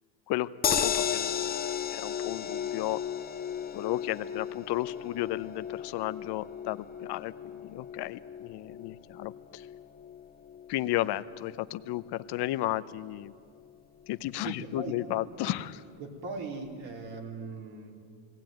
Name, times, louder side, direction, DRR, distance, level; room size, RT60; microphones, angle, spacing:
voice 1, 0.3-1.6 1.9-3.0 3.7-9.7 10.7-13.3 14.1-15.7, left 15 dB, 55° left, 14 dB, 0.8 m, -33 dB
sound 1, 0.6-12.9 13.2-13.3 13.6-13.7, left 8 dB, 20° left, 0.5 m, -35 dB
voice 2, 14.4-15.0 16.0-17.9, right 4 dB, 65° right, 0 dB, 4.0 m, -39 dB
19.5 x 18.5 x 9.1 m, 2.2 s
cardioid pair, 115°, 48 cm